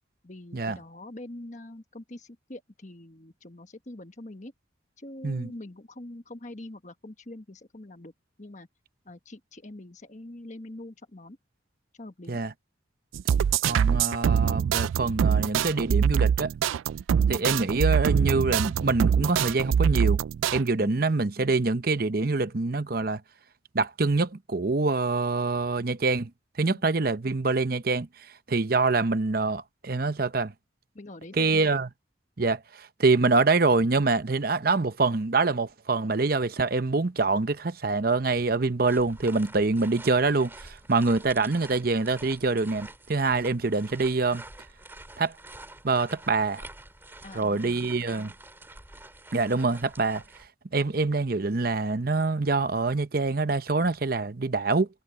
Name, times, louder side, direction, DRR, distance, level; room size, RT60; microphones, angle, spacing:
voice 1, 0.2-4.5 5.0-8.1 8.4-8.7 9.0-11.4 11.9-12.4 26.7-26.9 30.9-31.6 47.2-48.0, left 1 dB, 40° left, 1.4 m, -44 dB
sound 1, 13.1-20.6, right 8 dB, 85° right, 0.3 m, -24 dB
voice 2, 13.6-16.5 17.3-20.2 20.5-23.2 23.7-26.3 26.6-28.1 28.5-30.5 31.4-31.9 32.4-44.4 45.2-45.4 45.8-46.6 47.3-48.3 49.3-50.2 50.7-54.9, right 3 dB, 50° right, 0.8 m, -25 dB
sound 2, 38.9-50.5, right 2 dB, 10° right, 2.8 m, -47 dB
head